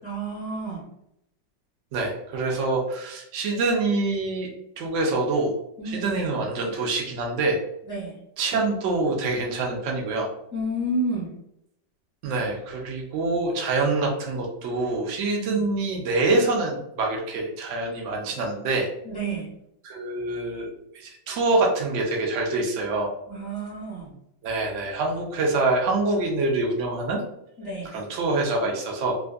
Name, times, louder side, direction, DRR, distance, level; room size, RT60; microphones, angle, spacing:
voice 1, 0.0-0.8 5.8-6.3 7.9-8.1 10.5-11.3 15.4-15.6 19.0-19.5 23.3-24.1 27.6-27.9, right 2 dB, 45° left, -6 dB, 0.8 m, -30 dB
voice 2, 1.9-4.5 4.8-5.5 5.8-7.6 8.4-10.3 12.2-18.9 19.8-20.7 20.9-23.1 24.4-27.2 27.9-29.2, right 2 dB, 70° right, 0 dB, 0.7 m, -25 dB
3.6 x 2.5 x 2.3 m, 0.80 s
omnidirectional pair, 2.0 m